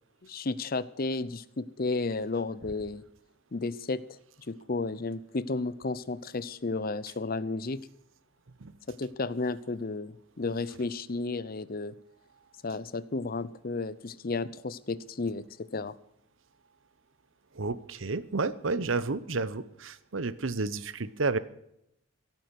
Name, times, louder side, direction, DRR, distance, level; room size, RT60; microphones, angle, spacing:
voice 1, 0.2-3.0 3.5-4.0 4.5-7.8 8.9-11.9 12.6-15.9, left 3 dB, 50° left, 17 dB, 0.7 m, -33 dB
voice 2, 17.5-21.4, right 3 dB, 80° right, 15 dB, 0.9 m, -31 dB
16.5 x 9.2 x 6.2 m, 0.78 s
head